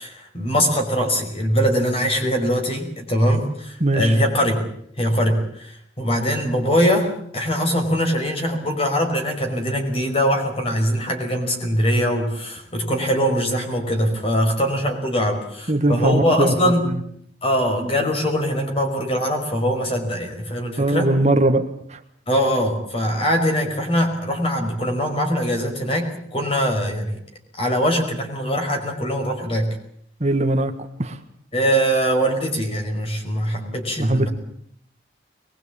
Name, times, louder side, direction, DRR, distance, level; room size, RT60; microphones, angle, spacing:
voice 1, 0.0-4.6 5.0-16.9 17.4-21.1 22.3-27.2 27.6-29.8 31.5-34.3, equal, 30° left, 4 dB, 5.5 m, -22 dB
voice 2, 3.8-4.2 15.7-16.5 16.8-16.9 20.8-21.6 21.9-22.0 30.2-30.7 31.0-31.2 34.0-34.3, right 2 dB, 40° right, 7 dB, 1.6 m, -20 dB
23.0 x 21.0 x 8.7 m, 0.67 s
head